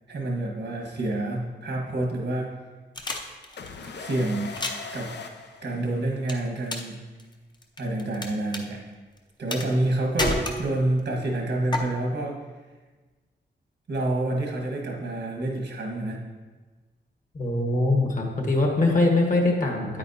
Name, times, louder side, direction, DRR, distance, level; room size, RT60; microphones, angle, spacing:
voice 1, 0.1-2.5 3.9-4.5 4.9-5.1 5.6-7.0 7.8-8.8 9.4-12.4 13.9-16.2, right 1 dB, 75° right, 0 dB, 1.6 m, -28 dB
sound 1, 3.0-3.9 4.4-4.9 6.3-6.9 7.2-8.3 8.5-8.6 9.5-9.9 10.2-11.0 11.7-11.8, left 1 dB, 25° left, 0.7 m, -29 dB
sound 2, 3.6-6.4, left 4 dB, 70° left, 0.6 m, -40 dB
voice 2, 17.3-20.0, left 2 dB, 45° left, 1 dB, 1.4 m, -22 dB
9.3 x 8.6 x 2.8 m, 1.3 s
wide cardioid pair, 145°, 18 cm